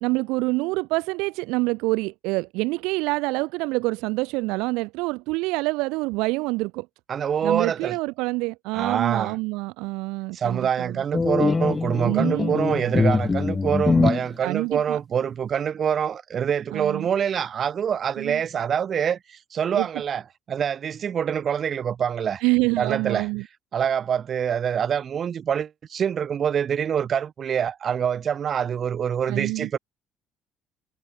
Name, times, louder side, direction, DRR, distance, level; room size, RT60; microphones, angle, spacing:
voice 1, 0.0-6.9 7.4-11.0 12.0-12.6 14.4-15.0 16.7-17.1 18.2-18.4 19.8-19.9 22.4-23.4 29.3-29.7, right 24 dB, 70° right, 0.3 m, -26 dB
voice 2, 7.1-8.0 8.7-9.4 10.3-20.2 20.5-22.4 22.8-23.3 23.7-29.8, right 8 dB, 50° right, 0.8 m, -25 dB
sound 1, 11.1-14.3, left 4 dB, 30° left, 0.4 m, -22 dB
hypercardioid pair, 50°, 0 cm